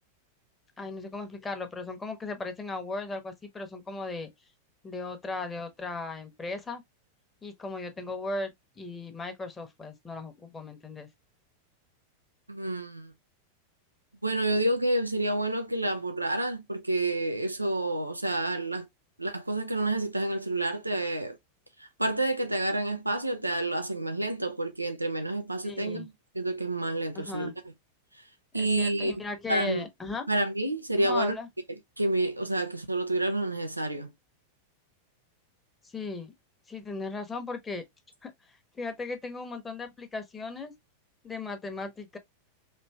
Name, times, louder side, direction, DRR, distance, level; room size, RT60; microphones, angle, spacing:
voice 1, 0.8-4.3 4.8-6.8 7.4-11.1 25.6-26.1 27.1-27.5 28.5-30.2 31.0-31.5 35.8-36.3 36.7-37.8 38.2-40.7 41.2-42.2, left 3 dB, 15° left, 1.0 m, -37 dB
voice 2, 12.5-13.1 14.2-18.9 19.2-21.4 21.8-27.5 28.5-29.1 29.5-29.8 30.3-31.4 32.0-34.1, right 1 dB, 85° right, 0.6 m, -29 dB
4.3 x 2.9 x 2.3 m
figure-of-eight pair, 90°, 0 cm